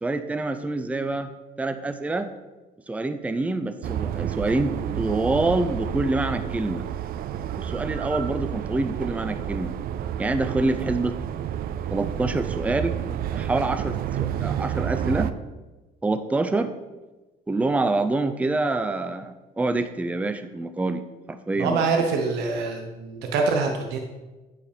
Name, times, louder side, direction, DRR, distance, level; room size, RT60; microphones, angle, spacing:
voice 1, 0.0-1.3 1.6-2.3 2.9-6.9 7.6-9.8 10.2-11.2 11.9-15.3 16.0-16.7 17.5-21.0 21.3-22.0, right 2 dB, 10° right, 9 dB, 0.5 m, -26 dB
sound 1, 3.8-15.3, right 10 dB, 60° right, 0.5 m, -30 dB
voice 2, 21.6-24.0, right 4 dB, 85° right, 3 dB, 1.0 m, -25 dB
9.3 x 5.0 x 5.2 m, 1.2 s
cardioid pair, 110°, 17 cm